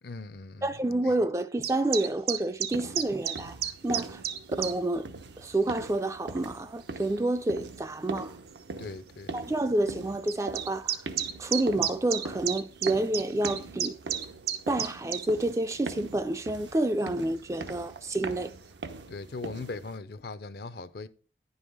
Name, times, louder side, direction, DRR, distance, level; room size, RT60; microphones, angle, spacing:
voice 1, 0.0-0.7 8.8-9.3 19.1-21.1, left 3 dB, 60° left, 0.5 m, -39 dB
voice 2, 0.6-3.6 3.8-4.2 4.6-5.1 5.4-8.3 9.3-11.0 11.4-14.0 14.7-18.5, right 1 dB, 15° right, 0.3 m, -29 dB
sound 1, 1.6-4.7 5.5-5.6 6.5-6.6 7.8-7.9 8.2-8.3 8.5-8.6 10.3-15.3, right 10 dB, 60° right, 0.6 m, -31 dB
sound 2, 2.7-20.0, right 3 dB, 85° right, 0.9 m, -42 dB
10.0 x 5.5 x 4.8 m
head